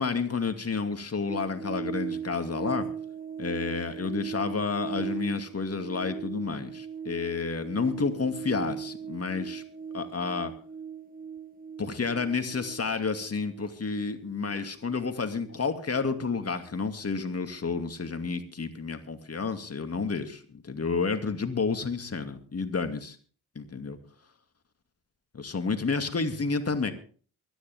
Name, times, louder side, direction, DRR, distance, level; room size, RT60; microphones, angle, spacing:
voice 1, 0.0-2.9 3.4-9.6 9.9-10.5 11.8-23.2 23.6-24.0 25.3-26.9, left 4 dB, 40° left, 8 dB, 2.4 m, -30 dB
sound 1, 1.3-17.8 18.1-18.3, right 7 dB, 20° right, 1.2 m, -39 dB
23.5 x 10.5 x 3.6 m, 0.42 s
hypercardioid pair, 40°, 38 cm